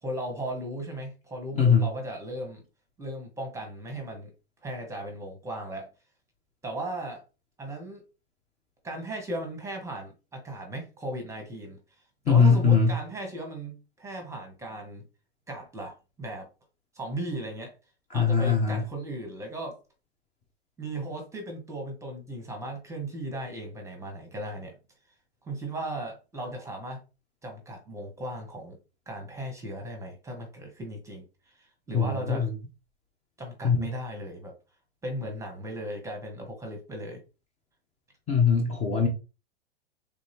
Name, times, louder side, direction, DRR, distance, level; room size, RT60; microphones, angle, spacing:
voice 1, 0.0-2.6 3.0-4.3 4.6-5.9 6.6-7.2 7.6-8.0 8.8-11.8 12.3-15.0 15.5-16.5 16.9-17.7 18.1-19.8 20.8-24.8 25.4-27.0 27.4-28.8 29.1-32.5 33.4-34.5 35.0-37.2, right 1 dB, 10° right, 1.0 m, -37 dB
voice 2, 1.6-1.9 12.3-13.0 18.1-18.8 31.9-32.5 33.6-33.9 38.3-39.1, left 5 dB, 20° left, 0.7 m, -21 dB
3.5 x 2.6 x 3.3 m
hypercardioid pair, 115°, 33 cm